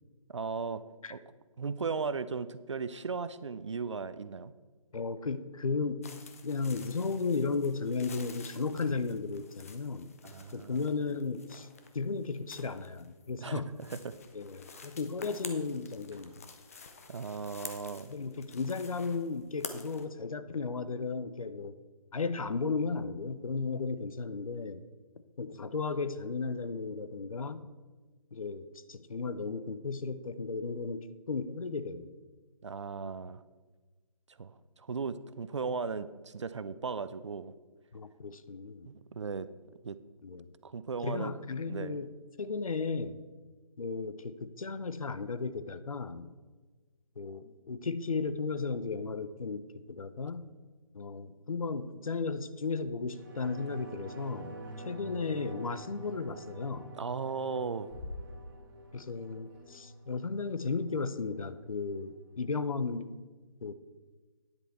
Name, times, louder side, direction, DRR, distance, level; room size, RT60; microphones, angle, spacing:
voice 1, 0.3-0.8 1.1-1.2 1.6-4.5 10.2-10.8 13.4-13.6 14.0-14.2 17.1-18.1 32.6-33.4 34.4-37.5 38.8-39.5 39.8-40.0 40.6-41.3 41.7-42.0 57.0-57.9, right 5 dB, 55° right, 14 dB, 0.5 m, -36 dB
voice 2, 4.9-6.1 6.4-10.1 10.5-11.7 11.9-13.7 14.3-16.5 18.1-21.7 22.1-24.8 25.4-27.7 28.3-32.1 37.9-38.9 40.2-40.5 41.0-42.1 42.4-43.2 43.8-46.3 47.2-50.4 50.9-54.6 54.8-56.9 58.9-63.1 63.6-63.7, left 4 dB, 70° left, 13 dB, 0.7 m, -35 dB
sound 1, 6.0-20.1, left 5 dB, 25° left, 0.6 m, -49 dB
sound 2, 53.1-62.1 62.5-62.6, right 2 dB, 35° right, 1.2 m, -49 dB
sound 3, 53.7-53.8 54.5-54.6 56.1-56.6 56.9-57.3 57.6-58.9 59.2-59.3 59.5-59.7, left 2 dB, 15° right, 1.7 m, -46 dB
9.9 x 7.9 x 4.2 m, 1.3 s
figure-of-eight pair, 160°, 19 cm